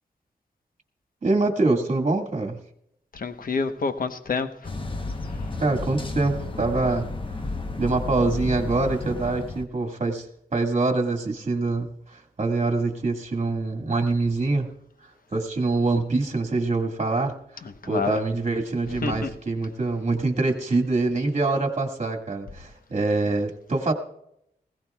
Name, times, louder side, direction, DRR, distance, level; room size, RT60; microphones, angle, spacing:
voice 1, 1.2-2.6 5.6-7.1 7.8-10.3 10.5-14.7 15.3-17.3 17.9-23.9, right 3 dB, 40° right, 1.9 m, -24 dB
voice 2, 3.1-4.7 17.9-18.2 18.9-19.3, left 4 dB, 60° left, 1.0 m, -28 dB
sound 1, 4.6-9.6, left 2 dB, 30° left, 1.0 m, -32 dB
20.0 x 16.5 x 2.4 m
wide cardioid pair, 100°, 16 cm